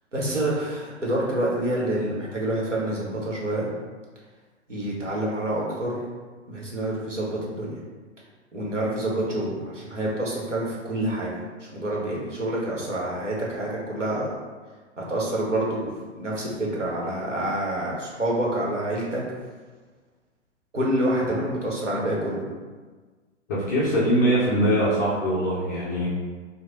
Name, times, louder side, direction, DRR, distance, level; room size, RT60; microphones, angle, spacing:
voice 1, 0.1-3.7 4.7-6.0 6.5-7.8 8.5-11.3 11.6-14.3 15.0-19.2 20.7-22.4, right 1 dB, 85° right, -4 dB, 1.1 m, -27 dB
voice 2, 23.5-26.1, equal, 15° left, -7 dB, 0.3 m, -22 dB
3.2 x 2.1 x 3.8 m, 1.4 s
figure-of-eight pair, 110°, 36 cm